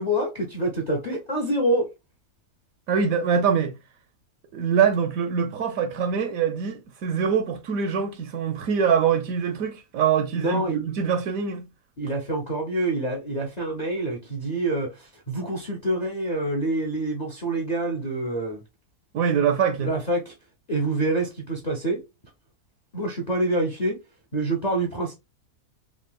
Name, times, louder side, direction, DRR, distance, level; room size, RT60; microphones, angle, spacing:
voice 1, 0.0-1.9 10.4-10.8 12.0-18.6 19.8-20.3 20.7-22.0 22.9-24.0 24.3-25.1, right 1 dB, 50° left, 0.4 m, -26 dB
voice 2, 2.9-3.7 4.5-11.7 19.1-19.9, right 7 dB, 70° right, 0.9 m, -24 dB
3.6 x 2.7 x 2.2 m
omnidirectional pair, 1.7 m